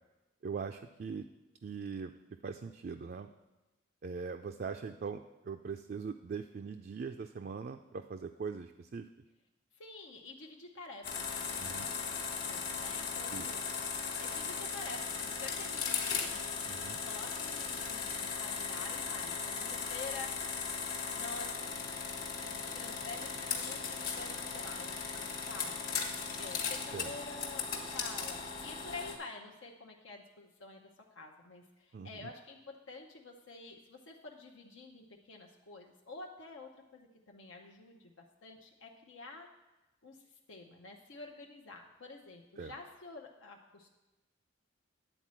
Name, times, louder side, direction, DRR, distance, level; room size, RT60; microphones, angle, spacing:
voice 1, 0.4-1.3 1.6-2.1 2.4-3.3 4.0-9.1 11.6-11.9 13.3-13.5 16.7-17.0 26.9-27.1 31.9-32.3 42.6-42.7, right 5 dB, 50° right, 5 dB, 0.3 m, -41 dB
voice 2, 9.7-13.6 14.2-20.6 21.1-39.5 40.0-40.2 40.5-43.9, left 3 dB, 85° left, 1 dB, 0.8 m, -49 dB
sound 1, 11.0-29.2, left 5 dB, 45° left, 1.3 m, -37 dB
9.9 x 4.2 x 7.5 m, 1.1 s
head